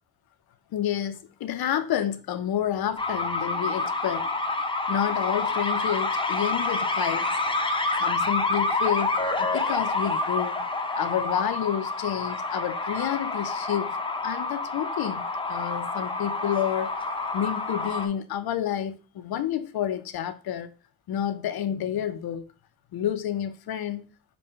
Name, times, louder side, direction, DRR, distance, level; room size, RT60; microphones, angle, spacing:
voice 1, 0.7-4.4 4.9-7.4 8.0-10.7 11.0-14.0 14.2-17.0 17.3-20.7 21.1-22.5 22.9-24.1, left 10 dB, 85° left, 0.6 m, -29 dB
sound 1, 3.0-18.1, left 3 dB, 15° left, 0.5 m, -28 dB
5.3 x 2.2 x 4.3 m
wide cardioid pair, 115°, 36 cm